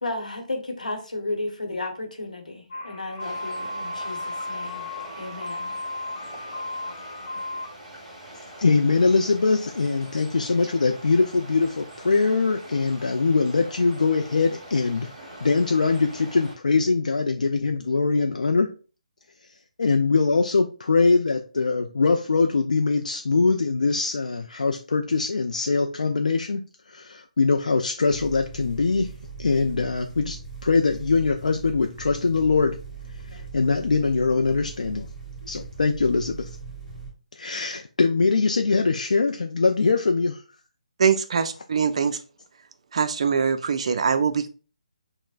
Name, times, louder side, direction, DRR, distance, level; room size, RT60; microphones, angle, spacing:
voice 1, 0.0-4.9 5.2-5.7, left 2 dB, 90° left, 3 dB, 1.0 m, -33 dB
sound 1, 2.7-7.7, left 2 dB, 45° left, 1.0 m, -34 dB
sound 2, 3.2-16.5, right 1 dB, 25° right, 1.8 m, -44 dB
voice 2, 8.3-15.1 15.4-18.7 19.8-26.6 26.9-29.1 29.4-32.8 33.3-35.1 35.4-36.5 37.4-40.4, left 4 dB, 75° left, 4 dB, 0.4 m, -22 dB
sound 3, 28.1-37.1, right 5 dB, 5° right, 1.9 m, -40 dB
voice 3, 41.0-42.2 42.9-44.5, right 6 dB, 50° right, 11 dB, 0.4 m, -23 dB
5.8 x 2.1 x 2.4 m, 0.36 s
figure-of-eight pair, 150°, 4 cm